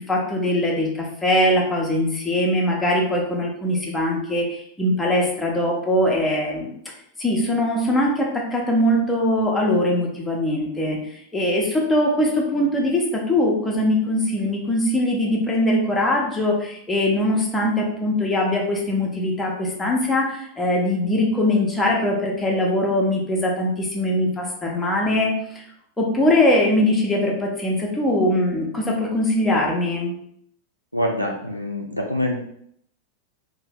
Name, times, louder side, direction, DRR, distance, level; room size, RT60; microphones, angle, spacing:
voice 1, 0.0-6.7 7.2-25.6 26.0-30.1, left 1 dB, 10° left, -2 dB, 0.7 m, -21 dB
voice 2, 30.9-32.4, left 1 dB, 90° left, 0 dB, 0.4 m, -25 dB
2.7 x 2.2 x 3.3 m, 0.69 s
figure-of-eight pair, 90°, 0 cm